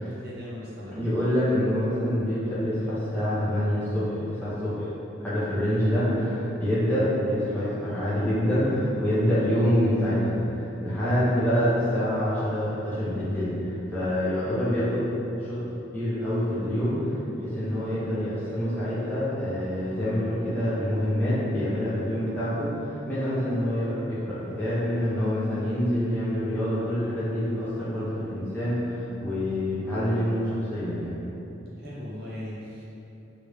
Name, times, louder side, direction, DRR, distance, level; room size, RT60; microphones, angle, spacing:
voice 1, 0.1-1.1 11.0-11.2 17.6-17.8 23.3-23.4 31.8-32.8, left 1 dB, 55° right, -8 dB, 0.9 m, -39 dB
voice 2, 0.9-4.9 5.2-15.1 15.4-15.6 15.9-17.0 17.4-31.2, equal, 10° left, -12 dB, 0.9 m, -26 dB
3.3 x 2.6 x 3.3 m, 3.0 s
head